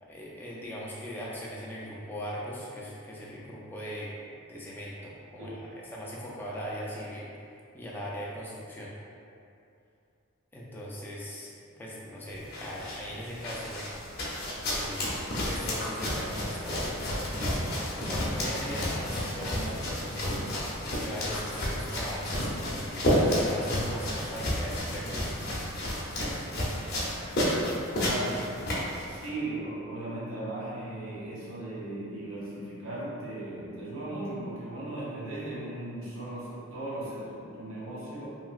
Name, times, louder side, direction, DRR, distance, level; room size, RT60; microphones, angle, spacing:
voice 1, 0.0-4.1 4.5-7.3 7.7-8.9 10.5-11.5 11.8-13.9 14.6-15.1 15.5-20.5 21.0-25.3, equal, 10° left, -6 dB, 0.3 m, -40 dB
sound 1, 12.3-29.3, equal, 50° left, 0.7 m, -31 dB
voice 2, 28.0-28.5 29.1-38.3, right 1 dB, 70° right, -7 dB, 0.7 m, -37 dB
2.8 x 2.8 x 2.4 m, 2.6 s
head